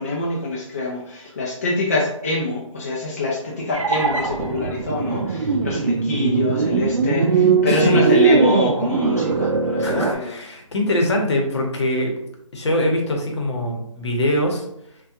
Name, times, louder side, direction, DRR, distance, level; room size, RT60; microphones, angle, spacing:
voice 1, 0.0-10.3, left 2 dB, 30° left, -4 dB, 0.3 m, -25 dB
sound 1, 3.7-10.1, right 5 dB, 70° right, 0.4 m, -20 dB
voice 2, 7.7-8.0 9.8-12.1 12.5-14.6, left 1 dB, 55° left, 1 dB, 0.8 m, -23 dB
3.3 x 2.2 x 2.7 m, 0.79 s
figure-of-eight pair, 160°, 17 cm